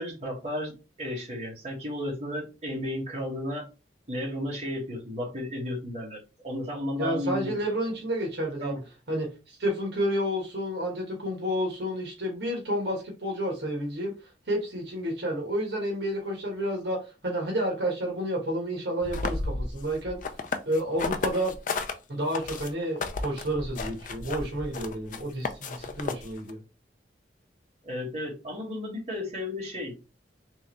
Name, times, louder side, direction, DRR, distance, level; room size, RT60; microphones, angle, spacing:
voice 1, 0.0-3.6 4.1-7.5 8.6-8.8 27.8-30.1, left 1 dB, 35° right, -4 dB, 1.7 m, -33 dB
voice 2, 7.0-8.8 9.1-14.1 14.5-20.2 20.6-21.5 22.1-26.6, equal, 65° right, -1 dB, 1.4 m, -30 dB
sound 1, 19.0-21.9 22.3-26.5, left 3 dB, 45° left, 0.5 m, -33 dB
3.5 x 3.3 x 3.1 m, 0.30 s
head